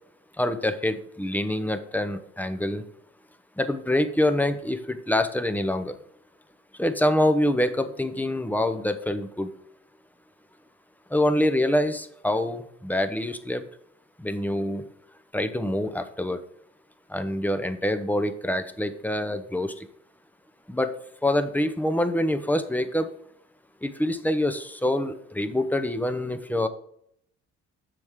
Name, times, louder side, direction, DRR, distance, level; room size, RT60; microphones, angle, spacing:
voice 1, 0.4-2.8 3.6-6.0 6.8-9.5 11.1-13.6 14.2-14.9 15.3-16.4 17.1-19.9 20.7-20.9 21.2-23.1 23.8-26.7, left 1 dB, 5° left, 9 dB, 0.8 m, -25 dB
7.7 x 6.4 x 3.7 m, 0.70 s
cardioid pair, 90°, 30 cm